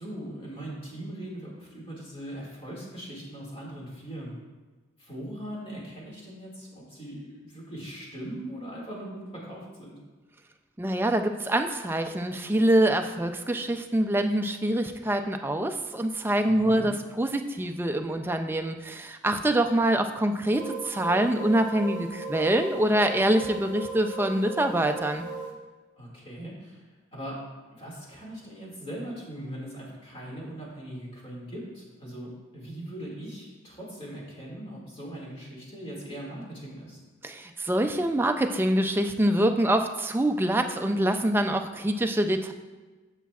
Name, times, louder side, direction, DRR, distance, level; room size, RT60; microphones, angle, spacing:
voice 1, 0.0-4.4 5.0-10.0 16.5-16.9 26.0-26.8 27.1-27.4 27.7-37.0, right 1 dB, 25° left, -4 dB, 2.1 m, -40 dB
voice 2, 10.8-25.2 37.2-42.5, right 1 dB, 10° right, 6 dB, 0.3 m, -25 dB
sound 1, 20.4-25.5, right 3 dB, 60° left, 1.2 m, -37 dB
9.9 x 7.3 x 2.4 m, 1.3 s
head